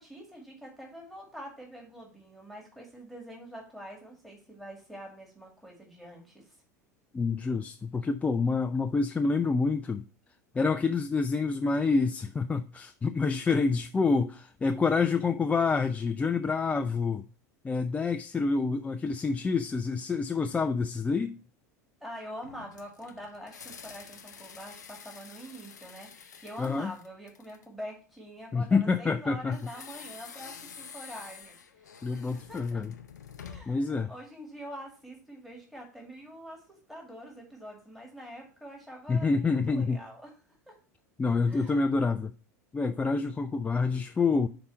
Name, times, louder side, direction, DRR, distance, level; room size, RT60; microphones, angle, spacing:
voice 1, 0.0-6.5 22.0-32.8 33.4-40.3 40.7-40.8 41.5-41.9, equal, ahead, 2.1 m, -45 dB
voice 2, 7.1-10.0 10.5-17.2 17.6-21.4 26.6-26.9 28.5-29.6 32.0-32.9 33.7-34.1 39.1-40.0 41.2-42.3 42.7-44.5, left 4 dB, 15° left, 0.4 m, -27 dB
sound 1, 22.4-27.8 29.5-33.9, left 6 dB, 85° left, 0.6 m, -48 dB
5.4 x 3.9 x 5.8 m
hypercardioid pair, 80°, 9 cm